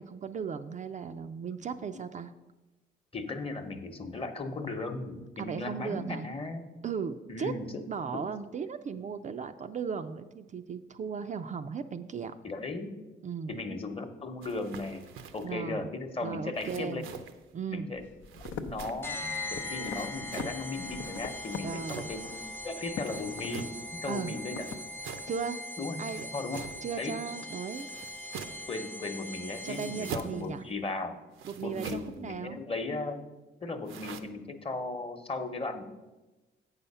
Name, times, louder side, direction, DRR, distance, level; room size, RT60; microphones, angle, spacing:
voice 1, 0.0-2.3 5.4-6.3 6.8-7.5 7.9-12.3 13.2-13.6 15.4-15.9 16.2-17.1 17.5-17.9 21.6-22.1 24.1-24.4 25.3-25.6 26.0-26.3 26.8-27.9 29.6-30.6 31.4-32.6, right 6 dB, 40° right, 8 dB, 0.4 m, -36 dB
voice 2, 3.1-6.7 7.3-7.8 12.4-12.9 13.5-15.1 15.3-17.0 17.7-18.0 18.3-23.7 24.0-24.7 25.8-26.0 26.3-26.6 27.0-27.2 28.7-31.2 31.6-33.3 33.6-35.8, left 3 dB, 30° left, 7 dB, 1.0 m, -36 dB
sound 1, 14.4-15.5 16.5-17.4 18.2-19.2 19.8-20.6 21.4-22.2 23.0-23.8 24.6-25.3 26.0-26.9 27.7-28.7 29.5-30.5 31.3-32.2 33.9-34.2, right 6 dB, 85° right, 0.7 m, -44 dB
sound 2, 17.9-25.3, left 6 dB, 70° left, 0.7 m, -44 dB
sound 3, 19.0-30.4, left 2 dB, 10° left, 0.6 m, -41 dB
8.0 x 5.6 x 5.5 m, 1.1 s
cardioid pair, 90°, 20 cm